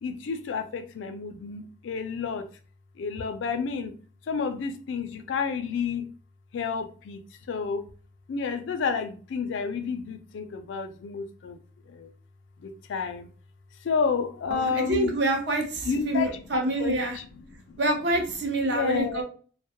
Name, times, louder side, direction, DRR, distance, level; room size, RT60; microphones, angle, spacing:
voice 1, 0.0-2.5 3.0-3.9 4.3-6.1 6.5-7.2 7.5-7.9 8.3-11.6 11.9-12.1 12.6-13.3 13.8-15.1 15.8-17.3 17.7-17.8 18.6-19.2, left 5 dB, 70° left, 0.3 m, -30 dB
voice 2, 14.5-17.2 17.8-19.2, right 1 dB, 60° right, 0.6 m, -27 dB
2.2 x 2.0 x 2.8 m
head